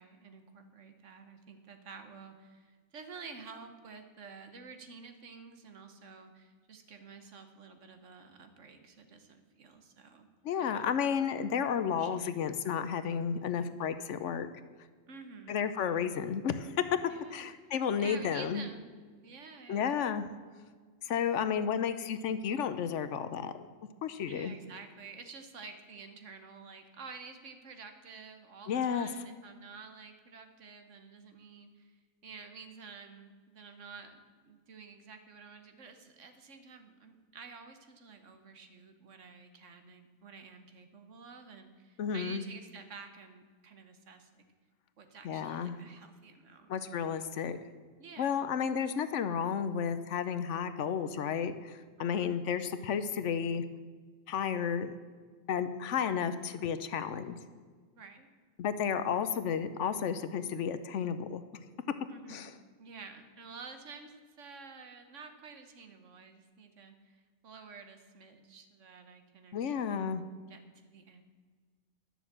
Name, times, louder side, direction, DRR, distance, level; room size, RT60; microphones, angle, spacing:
voice 1, 0.0-10.3 10.7-11.0 12.0-12.1 15.1-15.7 17.1-17.5 18.0-18.9 19.2-20.0 24.3-44.4 45.0-46.8 48.0-48.5 52.0-52.4 57.9-58.3 62.1-70.1 70.5-71.2, right 5 dB, 70° right, 7 dB, 1.4 m, -50 dB
voice 2, 10.4-14.5 15.5-16.8 17.3-18.6 19.7-20.3 21.0-23.5 24.0-24.5 28.7-29.1 42.0-42.4 45.2-45.8 46.7-47.6 48.2-53.6 54.3-54.9 55.5-57.4 58.6-61.4 62.3-62.5 69.5-70.2, left 7 dB, 70° left, 11 dB, 1.0 m, -32 dB
11.0 x 7.1 x 7.4 m, 1.5 s
omnidirectional pair, 1.4 m